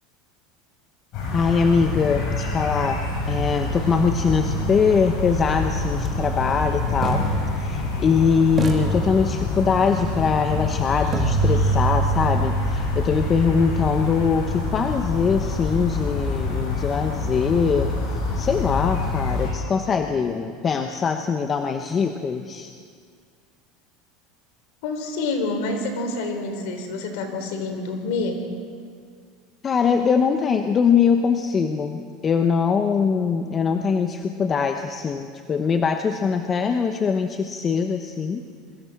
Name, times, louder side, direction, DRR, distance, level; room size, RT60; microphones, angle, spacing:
sound 1, 1.1-19.5, left 3 dB, 50° left, 7.8 m, -26 dB
voice 1, 1.3-3.0 3.3-7.2 7.6-17.9 18.4-22.7 29.6-38.4, left 6 dB, 25° left, 6 dB, 1.0 m, -22 dB
sound 2, 5.9-6.1 7.0-8.2 8.6-9.8 11.1-15.0, right 5 dB, 25° right, 2.5 m, -27 dB
voice 2, 24.8-28.5, left 3 dB, 70° left, 5 dB, 3.6 m, -27 dB
23.0 x 15.5 x 7.6 m, 2.1 s
supercardioid pair, 130°, 0 cm